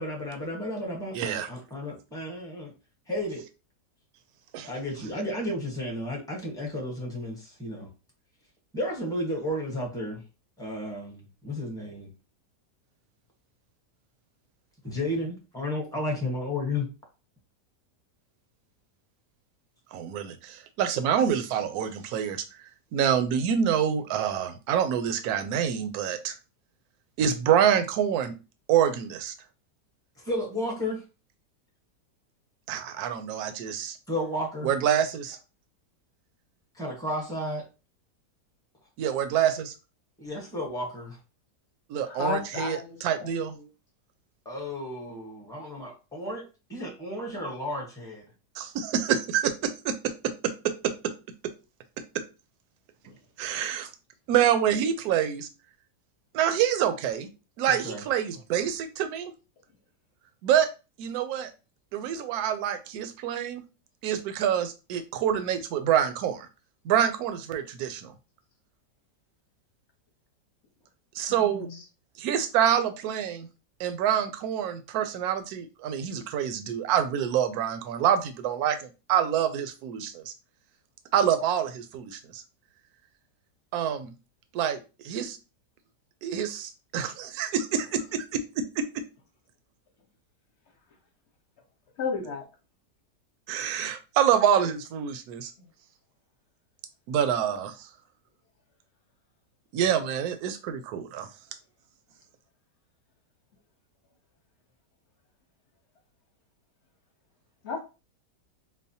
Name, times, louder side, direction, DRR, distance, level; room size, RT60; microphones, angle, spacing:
voice 1, 0.0-2.7 3.1-3.4 4.6-7.9 8.7-10.2 10.6-12.1 14.8-16.9 30.2-31.0 34.1-34.7 36.7-37.6 40.2-41.2 44.4-48.2 57.7-58.0, left 1 dB, 5° left, -1 dB, 0.7 m, -33 dB
voice 2, 1.1-1.5 4.5-4.7 19.9-22.4 22.9-26.4 27.2-28.3 28.7-29.3 32.7-34.0 34.6-35.4 39.0-39.7 41.9-43.5 48.6-50.0 50.2-50.9 53.4-53.9 54.3-55.5 56.3-57.3 57.6-59.3 60.4-60.7 61.0-61.5 61.9-63.6 64.0-66.5 66.8-68.1 71.1-71.7 72.2-73.5 73.8-80.3 81.1-82.4 83.7-84.1 84.5-85.4 86.2-88.9 93.5-95.5 97.1-97.9 99.7-101.3, right 9 dB, 70° right, 9 dB, 1.0 m, -26 dB
voice 3, 42.0-43.7 53.1-53.2 71.3-71.8 92.0-92.5 95.6-95.7 107.6-107.8, left 4 dB, 45° left, 3 dB, 1.1 m, -34 dB
5.3 x 2.1 x 2.7 m, 0.30 s
omnidirectional pair, 1.9 m